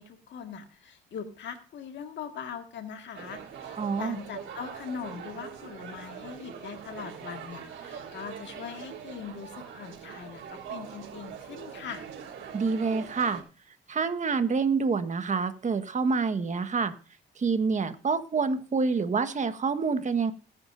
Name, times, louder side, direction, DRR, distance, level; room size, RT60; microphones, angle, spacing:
voice 1, 0.0-12.1, left 7 dB, 65° left, 5 dB, 1.9 m, -41 dB
sound 1, 3.1-13.4, right 7 dB, 70° right, 3.6 m, -42 dB
voice 2, 3.8-4.2 12.5-13.4 13.9-16.9 17.4-20.3, right 5 dB, 40° right, 10 dB, 1.4 m, -27 dB
20.5 x 9.8 x 2.7 m, 0.36 s
cardioid pair, 90°, 20 cm